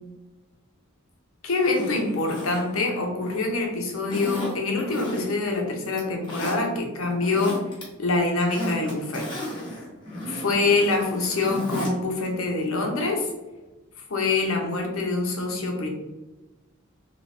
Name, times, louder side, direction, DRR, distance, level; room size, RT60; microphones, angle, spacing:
voice 1, 1.4-7.6 8.0-9.3 10.3-13.3 14.1-15.9, left 3 dB, 70° left, 2 dB, 0.7 m, -25 dB
Zipper (clothing), 1.6-3.5 4.1-5.5 5.9-6.6 7.1-7.8 8.2-11.9 12.3-12.4, equal, 20° left, 1.0 m, -34 dB
3.3 x 2.9 x 2.6 m, 1.1 s
head